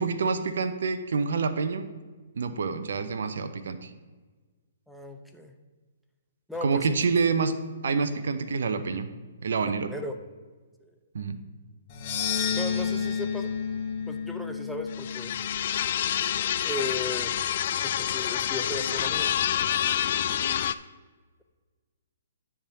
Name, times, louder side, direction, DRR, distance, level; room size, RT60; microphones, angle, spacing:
voice 1, 0.0-1.9 2.3-3.9 6.6-7.5 7.8-9.1 9.4-9.9 11.1-11.4, right 5 dB, 70° right, 9 dB, 0.8 m, -27 dB
voice 2, 4.9-5.5 6.5-7.0 9.7-10.2 12.5-13.5 14.1-15.4 16.6-17.3 17.8-19.3, left 1 dB, ahead, 4 dB, 0.7 m, -36 dB
sound 1, 11.9-16.2, left 6 dB, 40° left, 1.1 m, -31 dB
sound 2, 14.9-20.7, left 10 dB, 55° left, 0.4 m, -27 dB
10.5 x 3.7 x 6.9 m, 1.4 s
hypercardioid pair, 140°, 0 cm